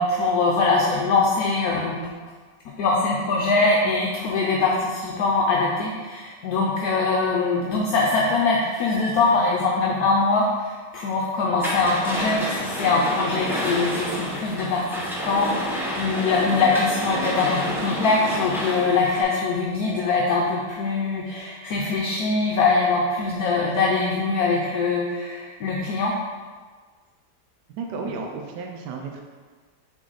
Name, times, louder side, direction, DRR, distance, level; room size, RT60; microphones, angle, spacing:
voice 1, 0.0-2.0 2.8-26.1, left 3 dB, 70° left, -2 dB, 1.0 m, -22 dB
sound 1, 11.6-19.2, equal, ahead, 0.5 m, -29 dB
voice 2, 27.8-29.2, right 4 dB, 80° right, 2 dB, 1.2 m, -33 dB
6.2 x 4.0 x 3.9 m, 1.5 s
omnidirectional pair, 1.8 m